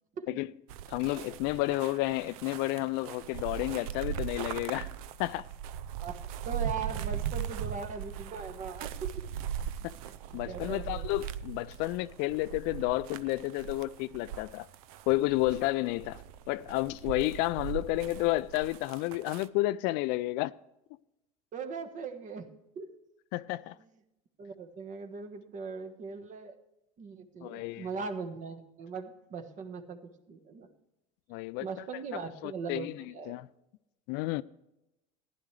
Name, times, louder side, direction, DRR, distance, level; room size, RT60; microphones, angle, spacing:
sound 1, 0.7-19.5, right 10 dB, 70° right, 0.6 m, -39 dB
voice 1, 0.9-4.9 5.2-5.5 10.3-14.7 15.1-16.2 16.5-20.5 23.3-23.8 27.4-27.9 31.3-31.7 32.4-33.5 34.1-34.4, left 19 dB, 60° left, 0.4 m, -31 dB
voice 2, 6.5-9.2 9.9-10.1 10.5-11.1 21.5-22.5 22.7-22.9 24.4-26.5 27.0-30.0 30.3-30.7 31.6-33.3, right 5 dB, 40° right, 1.4 m, -40 dB
15.0 x 11.0 x 3.3 m
hypercardioid pair, 85°, 19 cm